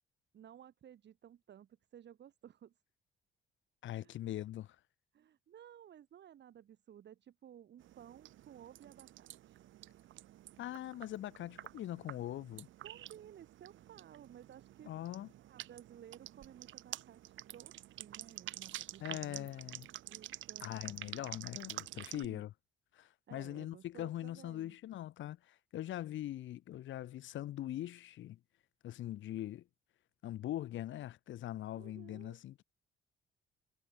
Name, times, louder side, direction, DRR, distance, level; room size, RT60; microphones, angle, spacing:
voice 1, 0.3-2.7 4.0-4.2 5.1-9.6 12.8-14.9 15.5-19.8 20.0-20.7 22.1-22.4 23.3-24.8 31.7-32.4, right 10 dB, 60° right, 2.1 m, -56 dB
voice 2, 3.8-4.8 10.6-12.7 14.8-15.3 19.0-19.9 20.6-22.5 22.9-28.4 28.8-29.6 30.2-32.6, left 13 dB, 75° left, 1.0 m, -42 dB
sound 1, 7.8-22.3, right 14 dB, 75° right, 1.1 m, -49 dB
cardioid pair, 90°, 20 cm